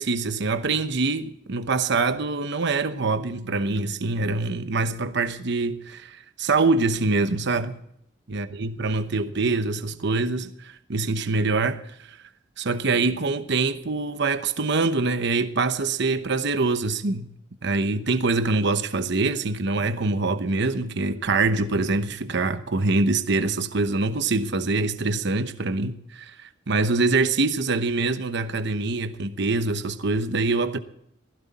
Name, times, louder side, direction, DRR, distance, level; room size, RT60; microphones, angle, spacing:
voice 1, 0.0-7.7 8.3-12.2 12.6-17.3 17.6-30.8, right 3 dB, 60° right, 0.9 m, -24 dB
16.5 x 15.5 x 4.2 m
head